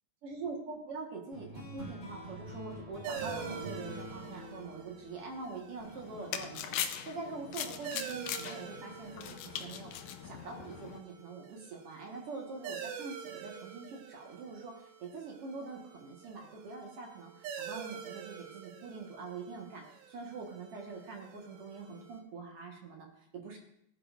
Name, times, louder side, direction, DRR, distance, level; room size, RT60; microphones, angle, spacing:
voice 1, 0.2-23.6, right 4 dB, 50° right, 1 dB, 2.0 m, -44 dB
sound 1, 1.3-6.2, equal, 20° left, 3.2 m, -46 dB
sound 2, 3.0-22.2, right 8 dB, 75° right, 2.8 m, -47 dB
sound 3, 5.8-11.0, left 9 dB, 75° left, 2.1 m, -40 dB
19.0 x 10.5 x 2.5 m, 0.73 s
omnidirectional pair, 4.1 m